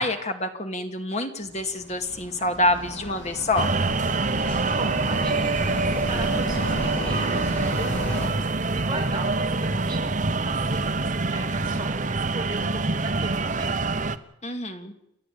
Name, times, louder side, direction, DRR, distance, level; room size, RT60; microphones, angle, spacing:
voice 1, 0.0-3.7 14.4-14.9, left 2 dB, 35° left, 6 dB, 2.4 m, -26 dB
sound 1, 1.4-8.3, left 1 dB, 60° left, 5.1 m, -34 dB
sound 2, 3.6-14.2, right 3 dB, 40° right, 1.0 m, -25 dB
voice 2, 4.8-10.0 10.4-14.1, right 2 dB, 25° right, 0 dB, 6.4 m, -38 dB
29.5 x 12.0 x 8.6 m, 0.81 s
head